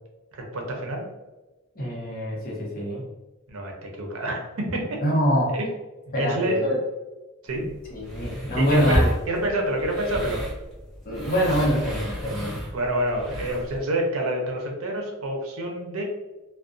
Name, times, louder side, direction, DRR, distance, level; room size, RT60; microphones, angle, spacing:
voice 1, 0.3-1.0 3.5-4.8 5.5-5.6 6.2-6.7 7.4-7.6 8.6-9.0 9.3-10.5 12.7-16.0, right 1 dB, 75° right, 1 dB, 0.6 m, -27 dB
voice 2, 1.8-3.0 5.0-5.6 6.1-6.8 7.6-9.1 11.0-12.6, equal, 45° left, -3 dB, 0.7 m, -25 dB
sound 1, 7.5-13.8, equal, ahead, 0.7 m, -31 dB
2.4 x 2.2 x 2.5 m, 1.1 s
head